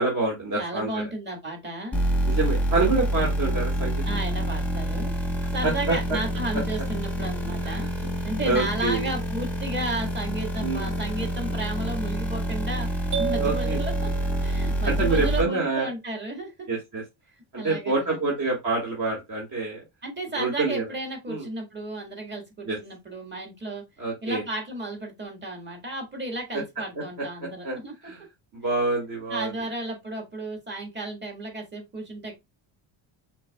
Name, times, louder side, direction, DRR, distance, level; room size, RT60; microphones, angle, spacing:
voice 1, 0.0-1.0 2.3-4.0 5.6-5.9 7.6-8.1 8.4-9.1 10.6-10.9 13.4-13.8 14.8-15.9 16.7-17.0 17.5-19.8 20.4-20.8 21.3-21.5 22.6-22.8 24.0-24.4 27.6-27.8 28.0-28.2 28.5-29.5, right 3 dB, 40° right, 1.6 m, -26 dB
voice 2, 0.6-2.0 4.0-5.1 5.5-7.9 8.2-12.9 13.2-14.1 14.4-16.7 17.6-18.2 20.0-23.8 24.2-27.9 29.3-32.3, right 1 dB, 20° right, 1.7 m, -33 dB
sound 1, 1.9-15.4, right 1 dB, 5° left, 1.0 m, -27 dB
sound 2, 13.1-15.0, right 7 dB, 65° right, 1.9 m, -32 dB
6.0 x 3.6 x 2.2 m
cardioid pair, 160°, 48 cm